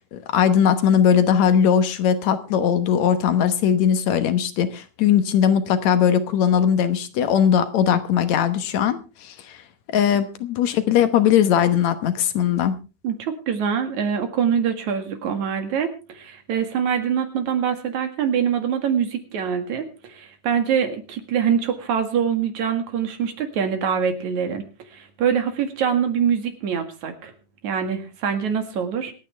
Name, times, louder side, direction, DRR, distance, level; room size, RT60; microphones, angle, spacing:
voice 1, 0.1-9.6 9.9-12.7, left 8 dB, 70° left, 10 dB, 2.3 m, -19 dB
voice 2, 13.0-24.6 24.9-27.3 27.6-29.1, right 7 dB, 75° right, 6 dB, 3.3 m, -24 dB
26.0 x 9.3 x 3.4 m, 0.32 s
omnidirectional pair, 3.3 m